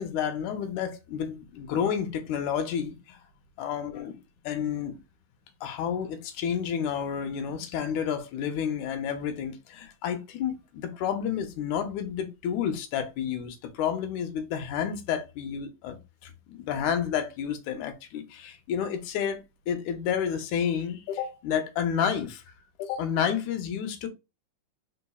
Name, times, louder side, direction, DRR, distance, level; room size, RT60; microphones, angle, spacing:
voice 1, 0.0-3.2 3.6-5.0 5.6-19.4 19.7-22.4 22.8-24.1, left 8 dB, 80° left, 2.1 m, -30 dB
4.1 x 4.0 x 2.3 m
omnidirectional pair, 3.4 m